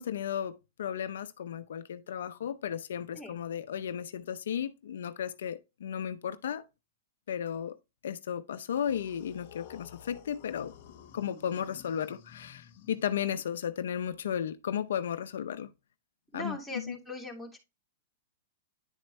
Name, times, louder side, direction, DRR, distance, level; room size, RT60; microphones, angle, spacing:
voice 1, 0.0-6.6 7.3-7.8 8.0-10.7 11.1-15.7 16.3-17.0, left 9 dB, 80° left, 0.6 m, -34 dB
sound 1, 8.7-13.5, left 8 dB, 55° left, 1.1 m, -53 dB
voice 2, 16.3-17.6, left 2 dB, ahead, 2.2 m, -40 dB
10.0 x 4.4 x 3.1 m
hypercardioid pair, 140°, 0 cm